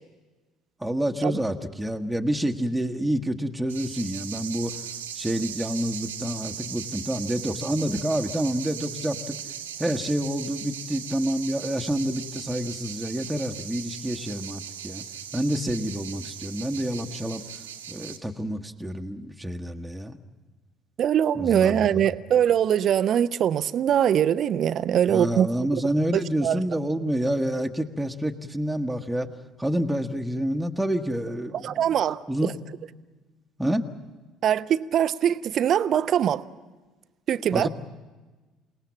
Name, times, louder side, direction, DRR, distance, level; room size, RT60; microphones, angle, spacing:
voice 1, 0.8-4.7 5.1-9.3 9.8-15.0 15.3-17.4 17.9-20.2 21.3-22.1 25.0-29.3 29.6-31.9 32.3-32.5 33.6-33.9 37.5-37.7, equal, 5° right, 3 dB, 1.3 m, -28 dB
sound 1, 3.7-18.2, right 8 dB, 80° right, 1.4 m, -38 dB
voice 2, 21.0-25.5 26.1-26.6 31.6-32.5 34.4-36.4 37.3-37.7, right 9 dB, 45° right, 15 dB, 0.7 m, -22 dB
28.5 x 18.5 x 7.1 m, 1.3 s
figure-of-eight pair, 55°, 0 cm